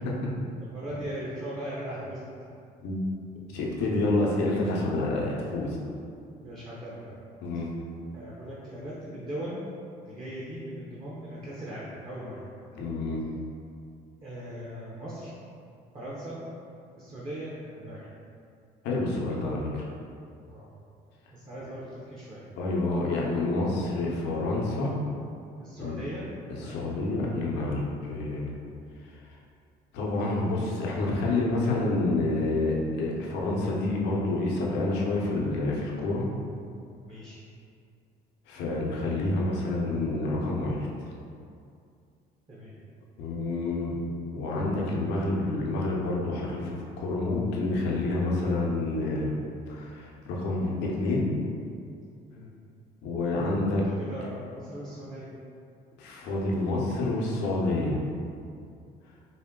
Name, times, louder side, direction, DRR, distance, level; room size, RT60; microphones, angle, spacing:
voice 1, 0.7-2.4 6.4-7.1 8.1-9.6 10.0-12.8 14.2-15.3 15.9-16.4 17.0-18.1 20.5-20.7 21.3-22.4 25.6-26.8 37.0-37.4 42.5-42.7 52.3-52.5 53.7-55.3, right 1 dB, 30° right, -7 dB, 0.8 m, -39 dB
voice 2, 3.5-5.8 7.4-7.7 12.7-13.2 18.8-19.9 22.6-24.9 25.8-26.0 26.7-28.5 29.0-29.2 29.9-36.3 38.5-40.9 43.2-44.0 44.3-49.3 49.7-51.3 53.0-53.8 56.0-58.0, left 2 dB, 90° left, -3 dB, 0.7 m, -28 dB
4.2 x 2.2 x 3.6 m, 2.4 s
cardioid pair, 110°, 17 cm